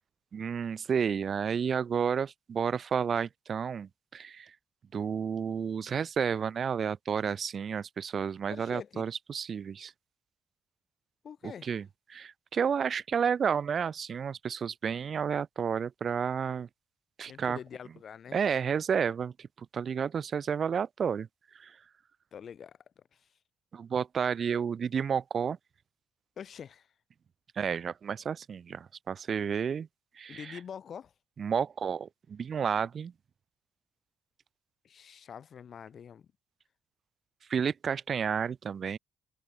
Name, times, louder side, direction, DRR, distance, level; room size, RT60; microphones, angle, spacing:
voice 1, 0.3-4.5 4.9-9.9 11.4-16.7 17.2-17.6 18.3-21.3 21.5-21.8 23.7-25.6 27.6-29.9 30.2-30.6 31.4-33.1 37.5-39.0, right 7 dB, 55° right, 0.7 m, -31 dB
voice 2, 8.5-9.1 11.2-11.7 17.3-18.4 22.3-22.8 26.4-26.9 30.3-31.1 34.8-36.3, left 8 dB, 60° left, 1.2 m, -45 dB
hypercardioid pair, 55°, 0 cm